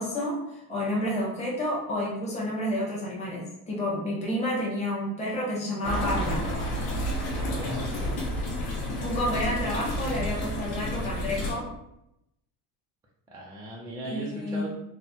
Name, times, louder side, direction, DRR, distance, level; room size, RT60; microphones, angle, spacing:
voice 1, 0.0-6.4 9.0-11.7 14.0-14.8, left 1 dB, 15° left, -5 dB, 1.0 m, -30 dB
sound 1, 5.8-11.5, equal, 55° left, 1.2 m, -30 dB
voice 2, 7.4-8.3 13.3-14.8, right 1 dB, 10° right, -3 dB, 0.3 m, -38 dB
4.1 x 2.1 x 4.1 m, 0.82 s
cardioid pair, 180°, 43 cm